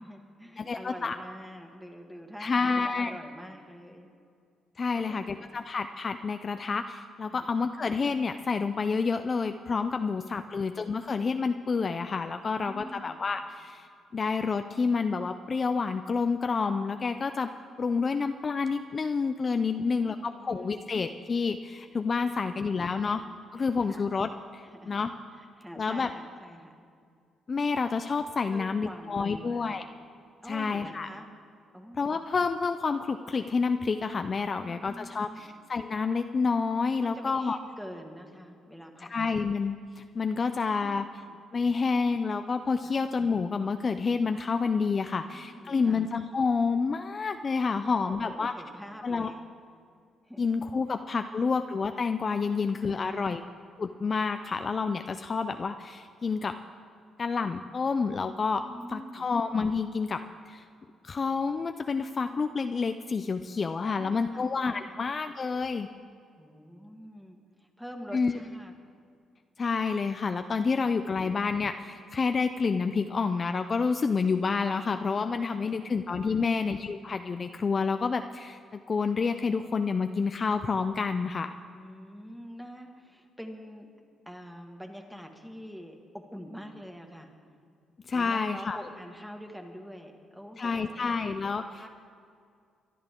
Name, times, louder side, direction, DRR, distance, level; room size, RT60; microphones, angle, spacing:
voice 1, 0.0-4.1 4.9-5.5 7.3-7.5 10.4-10.6 12.5-13.2 19.7-20.8 22.5-22.6 23.6-24.1 24.6-26.8 28.5-29.7 30.4-31.3 31.7-32.2 34.5-35.6 37.1-39.1 40.8-41.4 42.8-42.9 45.2-46.0 47.8-49.5 50.2-50.6 50.8-51.4 52.5-53.3 58.6-59.3 63.8-64.5 64.9-65.0 66.4-68.7 75.5-75.9 76.3-76.4 81.7-83.9 84.3-87.3 88.1-91.1 91.7-91.9, equal, 5° right, 2 dB, 1.7 m, -45 dB
voice 2, 0.6-1.2 2.4-3.2 4.8-13.9 14.1-17.5 17.8-23.2 23.5-25.1 25.8-26.1 27.5-29.8 30.5-31.1 32.0-37.6 39.1-41.0 41.5-48.5 49.0-49.3 50.4-53.4 53.8-56.6 57.2-58.6 58.9-60.6 61.0-65.9 68.1-68.3 69.6-81.6 88.1-88.8 90.6-91.6, left 4 dB, 40° left, 8 dB, 0.4 m, -29 dB
23.5 x 11.0 x 3.7 m, 2.3 s
cardioid pair, 90°, 0 cm